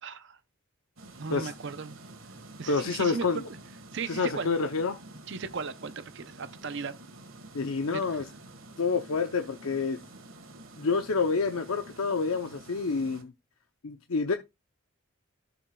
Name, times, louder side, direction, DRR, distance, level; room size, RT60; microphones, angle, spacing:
voice 1, 0.0-0.4 1.2-2.0 2.6-3.4 3.9-4.5 5.3-7.0 7.9-8.2, right 5 dB, 55° right, 0.6 m, -36 dB
sound 1, 1.0-13.2, right 2 dB, 70° right, 1.7 m, -49 dB
voice 2, 2.7-3.4 4.1-5.0 7.5-8.3 8.8-10.0 10.8-13.3 13.8-14.4, left 4 dB, 80° left, 0.7 m, -28 dB
13.0 x 7.0 x 2.3 m
head